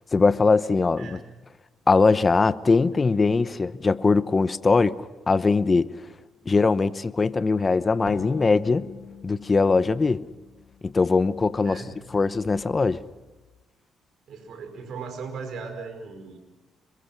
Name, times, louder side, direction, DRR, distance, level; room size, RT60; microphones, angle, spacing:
voice 1, 0.1-1.2 1.9-5.9 6.5-8.9 9.2-10.2 10.8-11.8 12.1-13.0, left 4 dB, 30° left, 15 dB, 0.9 m, -21 dB
sound 1, 8.1-11.5, left 8 dB, 80° left, 3.7 m, -43 dB
voice 2, 11.6-12.0 14.3-16.4, right 5 dB, 65° right, 7 dB, 5.3 m, -38 dB
26.5 x 22.5 x 5.9 m, 1.2 s
cardioid pair, 90°, 0 cm